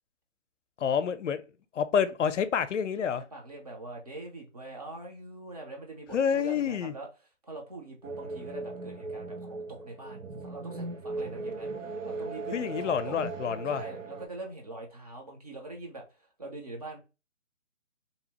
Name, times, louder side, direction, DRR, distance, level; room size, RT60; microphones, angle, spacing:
voice 1, 0.8-1.4 1.7-3.2 6.1-6.9 12.5-13.8, left 7 dB, 70° left, 0.5 m, -28 dB
voice 2, 3.1-7.1 7.4-13.2 13.7-17.0, right 2 dB, 30° right, 0.6 m, -43 dB
sound 1, 8.0-14.3, right 3 dB, 85° right, 0.7 m, -38 dB
2.7 x 2.0 x 2.8 m
figure-of-eight pair, 160°, 37 cm